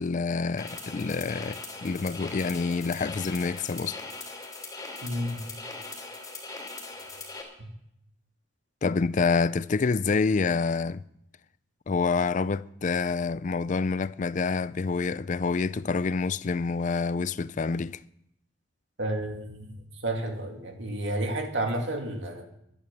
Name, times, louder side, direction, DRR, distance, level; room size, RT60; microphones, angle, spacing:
voice 1, 0.0-4.0 8.8-11.0 11.9-18.0, left 4 dB, 40° left, 0.4 m, -27 dB
sound 1, 0.6-7.4, left 3 dB, 20° left, 3.1 m, -40 dB
voice 2, 5.0-5.4 7.6-7.7 19.0-19.8 20.0-22.4, right 1 dB, 70° right, 2.5 m, -31 dB
12.0 x 10.5 x 7.5 m
head